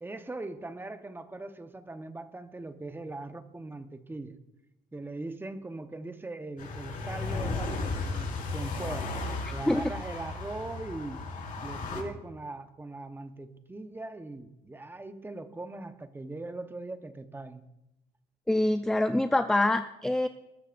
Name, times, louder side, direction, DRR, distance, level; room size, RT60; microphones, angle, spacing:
voice 1, 0.0-4.4 4.9-9.1 9.5-11.3 11.6-17.6, right 2 dB, 10° right, 9 dB, 1.0 m, -40 dB
sound 1, 6.6-12.0, left 3 dB, 55° left, 5.3 m, -35 dB
voice 2, 9.5-9.9 18.5-20.3, left 1 dB, 5° left, 8 dB, 0.5 m, -25 dB
21.0 x 12.5 x 2.6 m, 0.93 s
cardioid pair, 110°, 17 cm